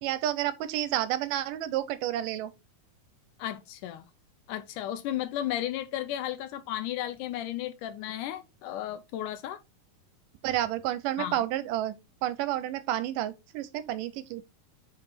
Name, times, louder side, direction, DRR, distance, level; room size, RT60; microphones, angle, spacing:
voice 1, 0.0-2.5 10.4-11.9 12.2-14.4, right 13 dB, 80° right, 2.1 m, -30 dB
voice 2, 3.4-4.1 4.5-9.6 11.2-11.4, left 12 dB, 80° left, 2.0 m, -34 dB
5.4 x 5.3 x 4.1 m
omnidirectional pair, 4.0 m